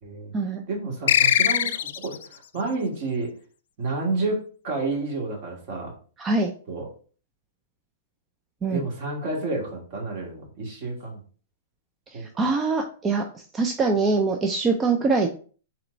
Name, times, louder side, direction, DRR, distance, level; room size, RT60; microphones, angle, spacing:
voice 1, 0.0-0.3 0.7-3.3 3.8-5.9 6.7-6.9 8.7-11.2 12.1-12.2, right 3 dB, 50° right, -1 dB, 2.3 m, -30 dB
sound 1, 1.1-2.3, left 10 dB, 70° left, 0.3 m, -21 dB
voice 2, 6.2-6.5 8.6-8.8 12.1-13.2 13.5-15.3, right 4 dB, 20° right, 4 dB, 0.6 m, -23 dB
4.3 x 3.1 x 3.9 m, 0.40 s
hypercardioid pair, 125°, 0 cm